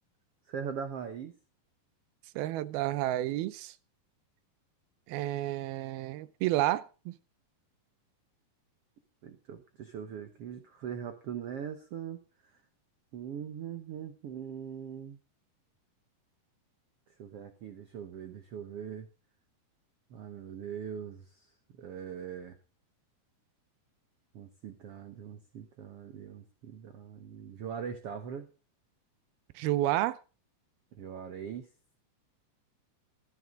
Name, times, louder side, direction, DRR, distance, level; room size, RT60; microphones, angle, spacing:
voice 1, 0.5-1.3 9.2-12.2 13.1-15.2 17.2-19.1 20.1-22.6 24.3-28.5 30.9-31.7, right 8 dB, 70° right, 1.4 m, -41 dB
voice 2, 2.4-3.7 5.1-7.1 29.6-30.2, right 15 dB, 85° right, 2.7 m, -30 dB
13.0 x 13.0 x 3.8 m
omnidirectional pair, 4.3 m